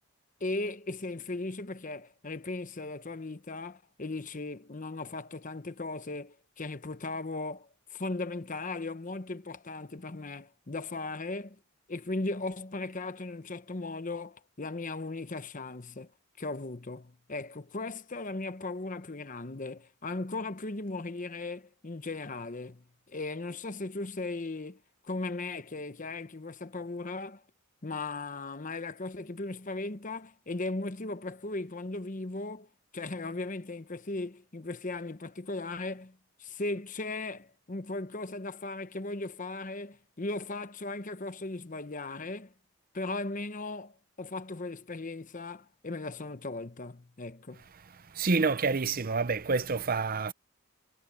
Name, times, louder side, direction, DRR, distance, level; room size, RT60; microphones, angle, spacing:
voice 1, 0.4-11.6 11.9-16.1 16.4-27.4 27.8-32.7 32.9-42.5 42.9-47.6, left 2 dB, 35° left, 0.9 m, -37 dB
voice 2, 48.1-50.3, right 4 dB, 40° right, 0.7 m, -28 dB
head